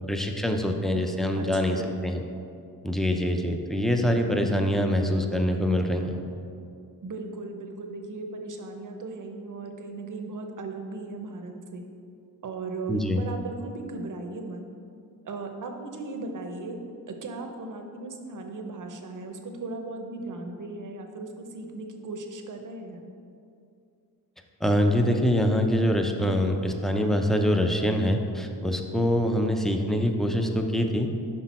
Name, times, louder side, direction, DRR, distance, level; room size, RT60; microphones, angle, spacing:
voice 1, 0.0-2.2 2.8-6.2 12.9-13.2 24.6-31.1, equal, ahead, 4 dB, 0.5 m, -24 dB
voice 2, 1.4-2.0 7.0-11.9 12.4-14.6 15.2-16.8 17.1-23.1, right 3 dB, 50° right, 4 dB, 0.8 m, -37 dB
6.1 x 5.2 x 4.2 m, 2.5 s
cardioid pair, 80°, 40 cm